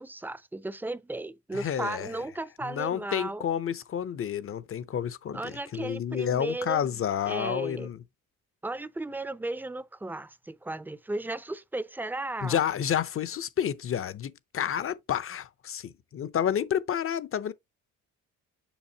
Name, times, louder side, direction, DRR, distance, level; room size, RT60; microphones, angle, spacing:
voice 1, 0.0-3.5 5.3-7.0 7.3-7.9 8.6-12.6, right 2 dB, 5° right, 0.5 m, -35 dB
voice 2, 1.5-2.1 2.6-8.0 12.4-17.5, left 9 dB, 45° left, 0.6 m, -30 dB
7.1 x 5.2 x 2.8 m
cardioid pair, 90°, 30 cm